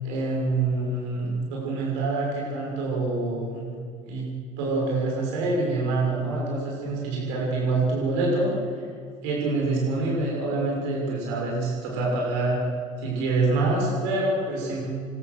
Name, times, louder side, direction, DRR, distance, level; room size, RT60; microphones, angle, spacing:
voice 1, 0.0-3.7 4.0-4.3 4.6-8.5 9.2-12.6 13.0-14.8, right 3 dB, 60° right, -3 dB, 6.8 m, -26 dB
27.5 x 24.0 x 6.4 m, 2.1 s
figure-of-eight pair, 60°, 17 cm